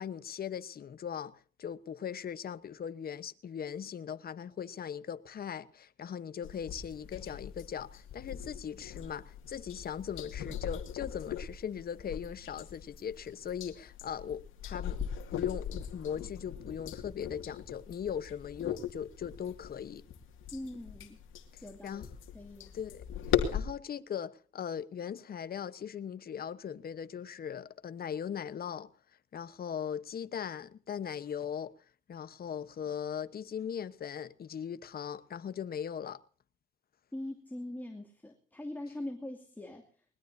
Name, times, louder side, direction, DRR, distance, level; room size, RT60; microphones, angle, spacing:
voice 1, 0.0-20.0 21.5-22.1 22.7-28.9 29.3-31.7 32.1-36.2, left 8 dB, 50° left, 1.1 m, -39 dB
sound 1, 6.4-23.6, left 9 dB, 80° left, 2.3 m, -39 dB
voice 2, 20.5-21.2 21.6-22.1 22.3-22.8 37.1-40.1, left 1 dB, 10° left, 2.5 m, -42 dB
20.5 x 20.5 x 2.7 m
cardioid pair, 90°, 20 cm